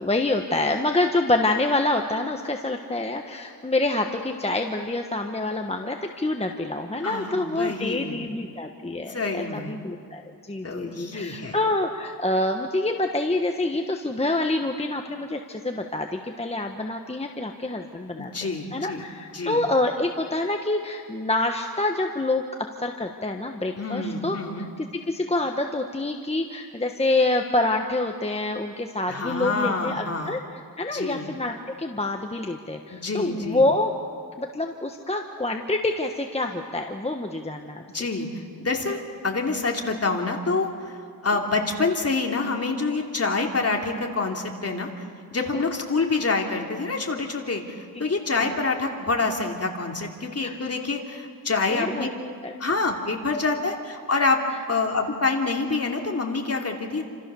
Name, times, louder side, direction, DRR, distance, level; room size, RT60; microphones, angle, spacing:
voice 1, 0.0-24.4 24.8-30.4 30.8-33.9 34.4-37.8 47.9-48.0 50.4-50.5 51.7-52.1 52.4-52.5, left 2 dB, 15° left, 3 dB, 1.3 m, -27 dB
voice 2, 7.0-8.3 9.1-9.8 10.6-11.5 18.2-19.0 19.3-19.6 23.8-24.7 29.1-30.4 30.9-31.3 32.9-33.6 37.9-41.0 41.2-44.9 45.3-52.1 52.6-54.4 54.7-57.0, left 3 dB, 40° left, 1 dB, 3.1 m, -27 dB
29.0 x 26.5 x 7.1 m, 2.2 s
wide cardioid pair, 115°, 37 cm